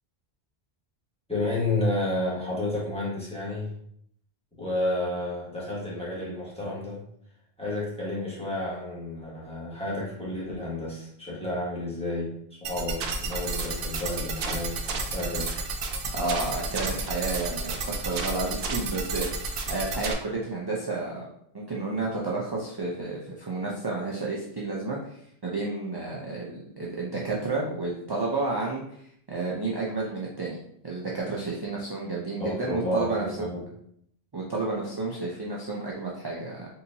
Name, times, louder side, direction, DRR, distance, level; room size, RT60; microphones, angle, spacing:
voice 1, 1.3-3.7 4.6-7.0 7.6-12.3 12.6-15.5 32.4-33.6, left 2 dB, 5° left, -7 dB, 1.4 m, -31 dB
sound 1, 12.6-20.1, right 3 dB, 70° right, 0.7 m, -31 dB
voice 2, 16.0-25.2 25.4-28.8 29.3-33.3 34.3-36.7, right 3 dB, 30° right, -4 dB, 0.4 m, -31 dB
4.1 x 2.7 x 2.7 m, 0.68 s
omnidirectional pair, 1.0 m